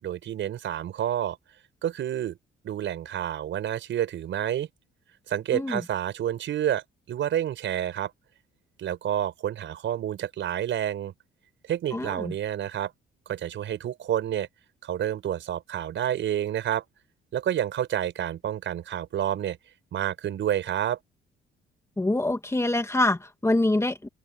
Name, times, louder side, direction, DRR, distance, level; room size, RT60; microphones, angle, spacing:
voice 1, 0.0-1.4 1.8-2.4 2.6-4.7 5.3-8.1 8.8-11.1 11.7-12.9 13.3-14.5 14.8-16.8 17.3-19.6 19.9-21.0, right 11 dB, 70° right, 5.6 m, -29 dB
voice 2, 11.9-12.3 22.0-24.1, left 2 dB, 15° left, 2.2 m, -25 dB
cardioid pair, 90°, 20 cm